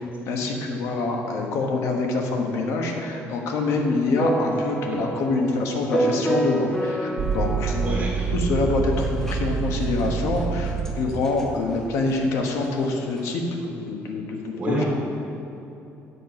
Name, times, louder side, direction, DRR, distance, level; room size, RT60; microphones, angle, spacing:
voice 1, 0.3-8.0 8.3-14.8, left 3 dB, 65° left, 2 dB, 1.2 m, -25 dB
sound 1, 4.1-8.0 9.0-9.4 10.0-10.1 10.4-10.5 10.8-10.9 11.2-11.4 13.2-13.3, right 1 dB, 10° left, 0.7 m, -27 dB
sound 2, 7.2-11.2, right 5 dB, 65° right, 1.3 m, -26 dB
voice 2, 7.8-8.3 14.6-14.9, right 2 dB, 30° right, -4 dB, 2.3 m, -28 dB
8.2 x 6.1 x 5.9 m, 2.8 s
cardioid pair, 165°, 5 cm